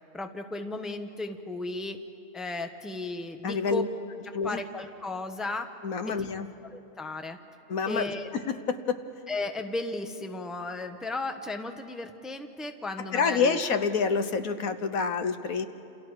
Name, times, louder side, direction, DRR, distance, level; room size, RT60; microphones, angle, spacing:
voice 1, 0.1-2.0 2.3-3.8 4.4-5.7 6.1-6.2 6.7-7.4 7.9-8.3 9.3-13.6, left 2 dB, ahead, 6 dB, 0.8 m, -35 dB
voice 2, 3.4-3.9 4.3-4.6 5.8-6.5 7.7-8.0 8.3-9.0 13.1-15.7, left 5 dB, 85° left, 9 dB, 1.5 m, -27 dB
28.5 x 28.5 x 4.8 m, 2.6 s
omnidirectional pair, 1.4 m